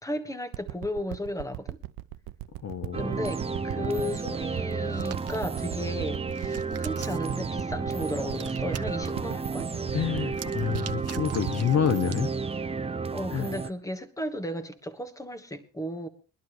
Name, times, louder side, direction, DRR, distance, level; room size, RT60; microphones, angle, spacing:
voice 1, 0.0-1.8 2.9-9.7 13.1-16.1, left 1 dB, 10° left, 1.3 m, -34 dB
sound 1, 0.5-13.3 13.9-14.0, right 16 dB, 85° right, 0.6 m, -39 dB
voice 2, 2.6-3.1 9.9-12.3 13.3-13.5, left 8 dB, 50° left, 0.9 m, -28 dB
sound 2, 2.9-13.7, right 4 dB, 15° right, 0.6 m, -32 dB
Hands, 4.9-5.4 6.1-7.4 8.3-9.1 10.3-12.3, right 9 dB, 45° right, 0.9 m, -44 dB
22.0 x 11.5 x 3.1 m
cardioid pair, 110°, 35 cm